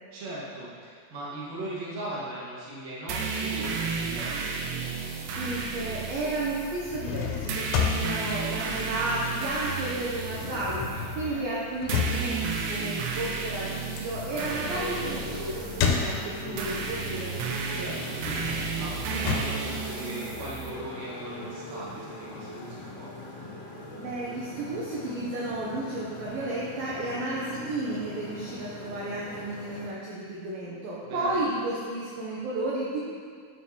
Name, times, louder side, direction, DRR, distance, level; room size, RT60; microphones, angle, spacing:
voice 1, 0.1-4.7 11.0-11.5 16.3-16.6 17.7-23.3 31.0-31.4, right 1 dB, 50° right, -8 dB, 2.4 m, -39 dB
sound 1, 3.1-20.7, right 5 dB, 90° right, 2.9 m, -33 dB
voice 2, 5.3-17.3 23.9-33.0, right 2 dB, 70° right, -7 dB, 2.4 m, -32 dB
sound 2, 6.7-9.6 9.8-16.7 17.1-20.7, left 7 dB, 90° left, 3.0 m, -32 dB
Motorcycle, 14.2-29.9, left 2 dB, 60° left, 2.0 m, -41 dB
9.2 x 6.3 x 3.1 m, 2.1 s
omnidirectional pair, 4.9 m